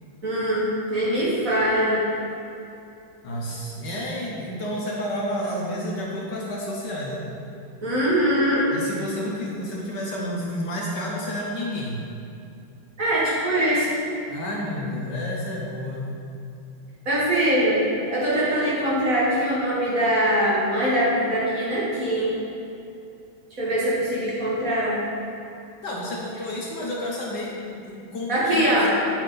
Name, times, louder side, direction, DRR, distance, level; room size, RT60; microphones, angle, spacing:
voice 1, 0.2-2.0 7.8-8.7 13.0-14.0 17.1-17.8 18.1-22.4 23.6-25.0 28.3-28.9, equal, 40° right, -7 dB, 1.9 m, -22 dB
voice 2, 3.2-7.2 8.7-12.0 14.3-16.1 25.8-28.9, left 1 dB, 60° left, -3 dB, 1.4 m, -30 dB
7.8 x 7.3 x 3.9 m, 2.7 s
omnidirectional pair, 2.3 m